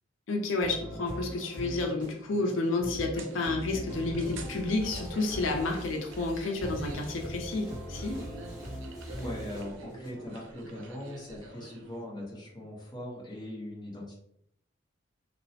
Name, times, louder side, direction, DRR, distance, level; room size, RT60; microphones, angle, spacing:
voice 1, 0.3-8.2, left 2 dB, 90° left, 2 dB, 0.4 m, -30 dB
sound 1, 0.6-10.1, equal, 25° right, 0.9 m, -41 dB
sound 2, 3.1-12.0, right 3 dB, 85° right, 0.4 m, -47 dB
sound 3, 4.3-9.6, equal, 5° right, 1.1 m, -47 dB
voice 2, 9.2-14.1, left 1 dB, 25° left, -4 dB, 0.8 m, -40 dB
3.0 x 2.0 x 2.7 m, 0.72 s
head